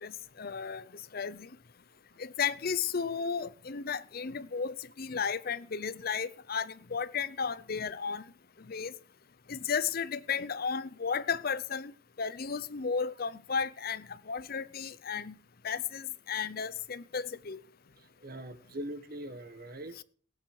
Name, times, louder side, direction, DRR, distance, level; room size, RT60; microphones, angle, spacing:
voice 1, 0.0-1.5 2.2-8.3 8.6-8.9 9.5-15.4 15.6-17.6 20.0-20.1, left 6 dB, 45° left, 0.6 m, -34 dB
voice 2, 18.0-20.0, right 1 dB, 45° right, 1.5 m, -42 dB
17.0 x 9.1 x 4.7 m
head